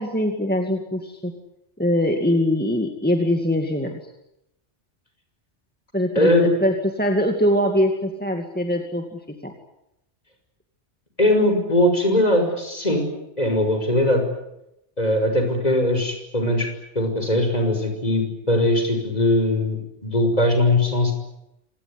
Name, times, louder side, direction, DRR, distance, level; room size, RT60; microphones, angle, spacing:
voice 1, 0.0-1.3 1.8-4.0 5.9-9.5, equal, 10° left, 3 dB, 2.3 m, -22 dB
voice 2, 6.2-6.5 11.2-13.1 13.4-14.2 15.0-16.7 16.9-21.1, left 1 dB, 35° left, 5 dB, 6.1 m, -20 dB
27.0 x 18.5 x 9.9 m, 0.85 s
omnidirectional pair, 1.2 m